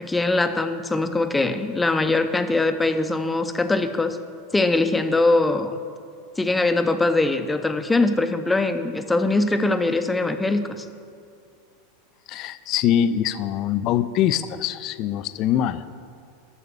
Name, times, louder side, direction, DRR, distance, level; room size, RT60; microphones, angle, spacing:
voice 1, 0.0-4.2 4.5-5.8 6.4-10.9, left 2 dB, 10° left, 8 dB, 0.7 m, -22 dB
voice 2, 12.3-15.8, left 10 dB, 45° left, 13 dB, 0.4 m, -23 dB
8.2 x 6.7 x 7.3 m, 2.3 s
figure-of-eight pair, 90°, 0 cm